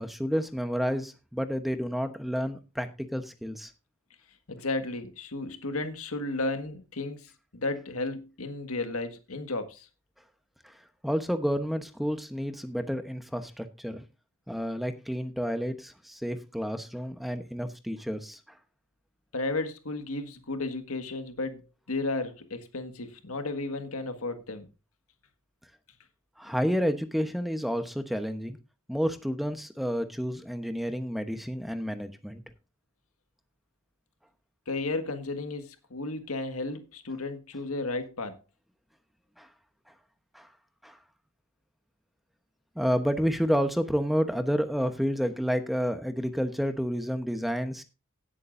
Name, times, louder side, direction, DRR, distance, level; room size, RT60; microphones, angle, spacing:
voice 1, 0.0-3.7 10.6-10.7 11.0-14.0 14.5-18.4 26.4-28.6 28.9-32.4 39.4-39.5 40.3-40.5 40.8-41.0 42.8-47.8, equal, ahead, 0.9 m, -30 dB
voice 2, 4.5-9.9 19.3-24.7 34.7-38.4, left 2 dB, 90° left, 1.7 m, -33 dB
17.0 x 8.5 x 2.6 m
head